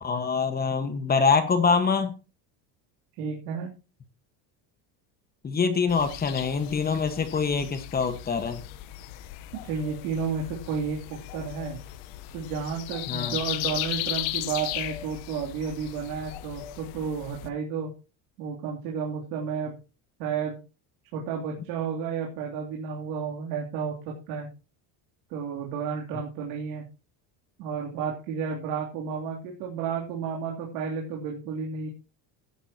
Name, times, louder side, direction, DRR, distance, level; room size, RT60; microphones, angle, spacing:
voice 1, 0.0-2.1 5.4-8.6 13.1-13.4, left 5 dB, 20° left, 9 dB, 1.5 m, -25 dB
voice 2, 3.2-3.7 9.6-11.8 12.3-17.9 18.4-19.7 20.2-20.6 21.1-24.5 25.3-26.8 27.6-31.9, right 6 dB, 80° right, -1 dB, 3.2 m, -32 dB
sound 1, 5.9-17.5, left 15 dB, 75° left, 1.1 m, -36 dB
16.5 x 11.0 x 2.9 m, 0.31 s
cardioid pair, 155°, 44 cm